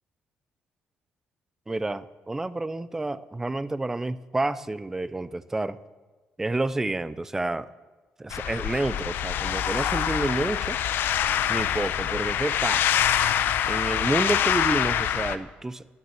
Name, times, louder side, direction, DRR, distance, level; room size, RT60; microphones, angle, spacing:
voice 1, 1.7-5.8 6.4-7.7 8.2-10.8 11.5-13.0 13.6-15.9, right 2 dB, 10° right, 16 dB, 0.4 m, -29 dB
sound 1, 8.3-15.4, left 10 dB, 70° left, 0.6 m, -25 dB
11.0 x 9.4 x 7.7 m, 1.3 s
cardioid pair, 140°, 4 cm